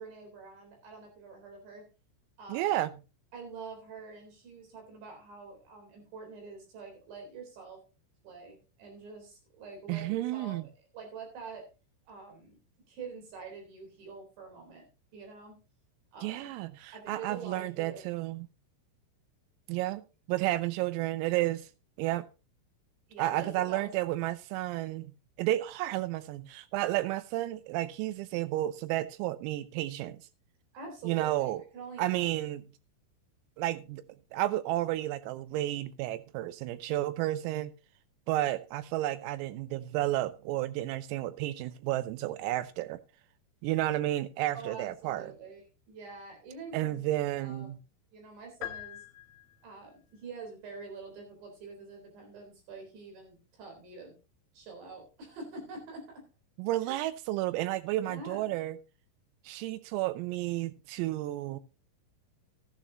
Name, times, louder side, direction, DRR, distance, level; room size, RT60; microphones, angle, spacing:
voice 1, 0.0-1.9 2.4-2.7 3.3-7.8 8.2-10.6 10.9-11.7 12.1-12.6 12.9-14.9 15.1-15.6 16.1-16.5 16.9-18.1 23.1-23.9 30.7-32.5 44.5-45.6 45.9-47.7 48.1-49.0 49.6-54.2 54.5-56.2 56.9-57.0 57.9-58.5, right 4 dB, 60° right, 6.0 m, -46 dB
voice 2, 2.5-2.9 9.9-10.7 16.2-18.5 19.7-21.7 22.0-22.3 23.2-25.1 25.4-30.2 31.0-31.6 32.0-32.7 33.6-34.0 34.3-37.7 38.3-43.0 43.6-45.3 46.7-47.8 56.6-58.8 59.5-61.6, right 15 dB, 85° right, 3.5 m, -32 dB
sound 1, 48.6-49.9, left 13 dB, 75° left, 3.1 m, -43 dB
14.0 x 11.0 x 2.9 m
omnidirectional pair, 6.0 m